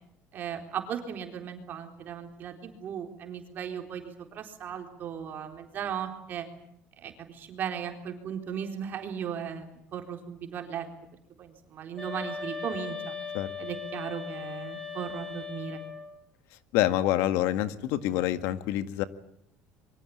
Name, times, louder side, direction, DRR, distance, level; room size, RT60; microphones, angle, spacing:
voice 1, 0.3-6.5 7.0-10.9 11.4-13.1 13.6-15.8, right 8 dB, 45° right, 5 dB, 4.1 m, -37 dB
sound 1, 12.0-16.1, left 5 dB, 15° left, 7.1 m, -38 dB
voice 2, 16.7-19.0, left 13 dB, 80° left, 12 dB, 1.8 m, -26 dB
26.0 x 23.5 x 8.8 m, 0.71 s
cardioid pair, 135°, 4 cm